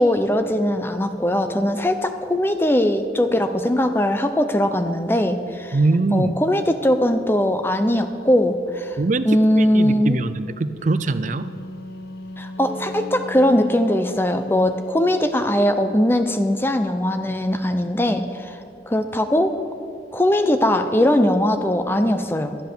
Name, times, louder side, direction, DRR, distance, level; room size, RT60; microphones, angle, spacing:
voice 1, 0.0-5.8 6.1-9.0 9.2-10.2 12.4-18.6 18.9-19.6 20.1-22.6, left 1 dB, 15° left, 8 dB, 0.6 m, -20 dB
voice 2, 5.7-6.3 9.0-9.3 9.6-11.5, right 3 dB, 45° right, 13 dB, 0.5 m, -22 dB
Wind instrument woodwind instrument, 10.9-15.1, left 1 dB, 60° left, 0.6 m, -37 dB
sound 1, 12.6-17.5, right 2 dB, 40° left, 3.2 m, -42 dB
12.5 x 8.1 x 6.8 m, 2.4 s
head